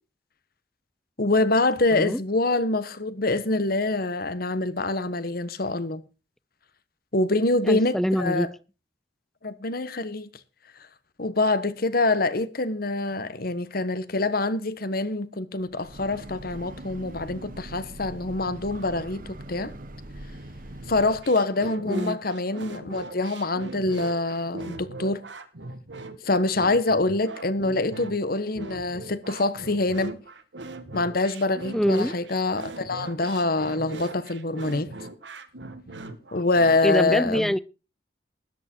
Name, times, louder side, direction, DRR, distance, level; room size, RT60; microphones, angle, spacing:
voice 1, 1.2-6.0 7.1-8.5 9.4-10.3 11.2-19.2 19.5-19.7 20.9-25.2 26.2-30.2 30.9-34.9 36.3-37.5, left 2 dB, 55° left, 1.3 m, -25 dB
voice 2, 7.6-8.5 21.8-22.2 27.6-27.8 31.7-32.1 36.8-37.6, equal, ahead, 0.5 m, -25 dB
Breathing / Train, 15.6-21.4, right 1 dB, 50° right, 1.1 m, -41 dB
sound 1, 20.8-36.8, right 2 dB, 85° right, 1.7 m, -40 dB
13.0 x 11.0 x 4.6 m
head